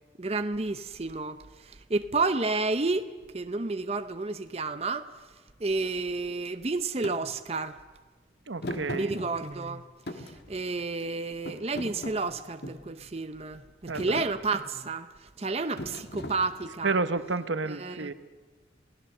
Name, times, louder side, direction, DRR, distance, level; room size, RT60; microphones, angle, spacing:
voice 1, 0.2-5.1 5.6-7.8 8.9-9.9 10.1-17.0 17.7-18.1, right 3 dB, 35° right, 0.7 m, -31 dB
Thump thud, 7.0-7.2 8.6-9.7 10.1-11.1 11.5-12.9 13.5-13.7 14.0-14.3 15.8-16.8, left 1 dB, 55° left, 1.8 m, -39 dB
voice 2, 8.5-9.1 13.9-14.2 16.8-18.1, right 3 dB, 85° right, 0.9 m, -30 dB
27.5 x 17.5 x 6.7 m
head